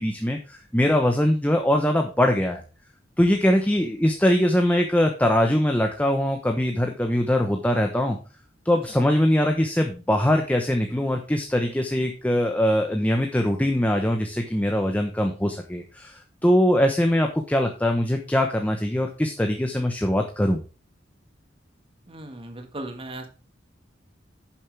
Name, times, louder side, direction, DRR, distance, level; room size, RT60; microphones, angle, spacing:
voice 1, 0.0-2.6 3.2-8.2 8.6-20.6, left 1 dB, 10° left, 3 dB, 1.0 m, -22 dB
voice 2, 22.1-23.3, right 1 dB, 30° right, 6 dB, 1.7 m, -37 dB
10.5 x 7.3 x 3.4 m, 0.33 s
head